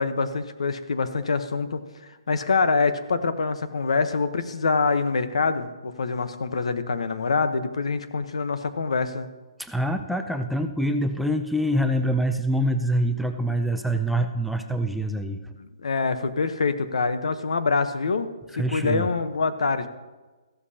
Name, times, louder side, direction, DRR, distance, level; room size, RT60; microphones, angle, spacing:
voice 1, 0.0-1.8 2.3-9.3 15.8-18.3 18.6-19.9, left 4 dB, 85° left, 10 dB, 1.0 m, -25 dB
voice 2, 9.6-15.6 18.5-19.1, equal, ahead, 6 dB, 0.3 m, -25 dB
15.0 x 12.5 x 2.9 m, 1.2 s
hypercardioid pair, 170°, 3 cm